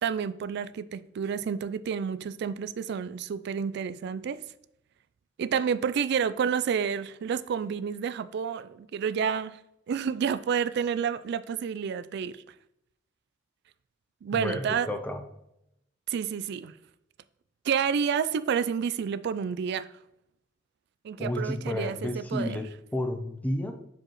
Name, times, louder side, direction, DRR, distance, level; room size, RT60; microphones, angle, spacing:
voice 1, 0.0-4.4 5.4-9.6 9.9-12.3 14.2-14.9 16.1-16.7 17.7-19.9 21.0-22.6, right 7 dB, 60° right, 0.3 m, -29 dB
voice 2, 14.3-15.2 21.2-23.7, left 1 dB, 10° left, 0.6 m, -31 dB
7.5 x 4.7 x 3.0 m
head